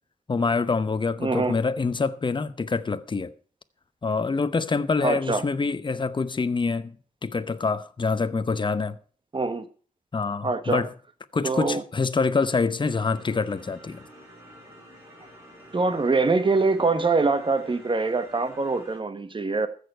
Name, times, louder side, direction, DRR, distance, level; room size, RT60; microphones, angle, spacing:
voice 1, 0.3-3.3 4.0-7.0 7.2-9.0 10.1-10.9 11.3-14.0, left 4 dB, 35° left, 0.8 m, -26 dB
voice 2, 1.2-1.5 5.0-5.4 9.3-9.6 10.4-10.8 11.4-11.8 15.7-19.7, right 3 dB, 35° right, 1.2 m, -24 dB
sound 1, 12.8-19.0, equal, 15° right, 5.8 m, -49 dB
14.5 x 6.6 x 6.7 m
wide cardioid pair, 110°, 14 cm